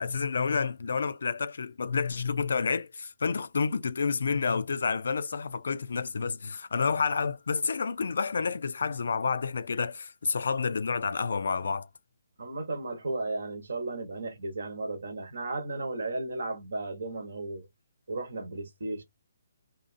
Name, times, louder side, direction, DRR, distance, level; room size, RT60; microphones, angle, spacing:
voice 1, 0.0-11.9, left 5 dB, 65° left, 0.3 m, -29 dB
voice 2, 12.4-17.7 18.1-19.0, right 2 dB, 70° right, 1.0 m, -34 dB
2.7 x 2.3 x 2.4 m
figure-of-eight pair, 140°, 0 cm